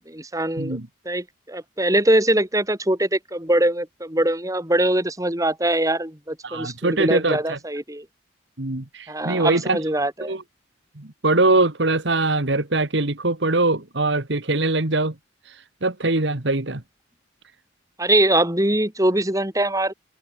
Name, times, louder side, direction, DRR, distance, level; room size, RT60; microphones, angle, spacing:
voice 1, 0.1-0.8 1.0-8.0 9.1-10.4 18.0-19.9, right 1 dB, 15° right, 3.2 m, -22 dB
voice 2, 6.4-7.6 8.6-9.8 10.3-10.4 11.0-15.1 15.8-16.8, right 2 dB, 60° right, 1.9 m, -22 dB
open air
head